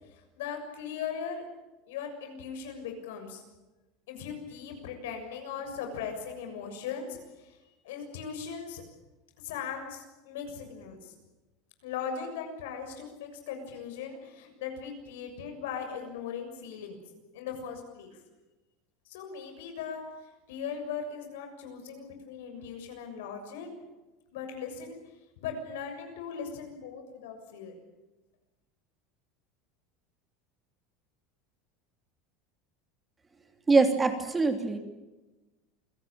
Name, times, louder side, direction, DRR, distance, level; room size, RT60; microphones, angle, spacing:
voice 1, 0.4-1.4 1.9-3.4 4.1-7.6 7.8-8.8 9.4-11.1 11.8-17.0 17.3-18.2 19.1-20.0 20.5-23.7 24.3-25.0 25.4-27.7, left 6 dB, 90° left, 5 dB, 6.8 m, -39 dB
voice 2, 33.7-34.8, right 3 dB, 15° right, 6 dB, 2.9 m, -23 dB
28.0 x 17.5 x 8.8 m, 1.1 s
supercardioid pair, 140°, 0 cm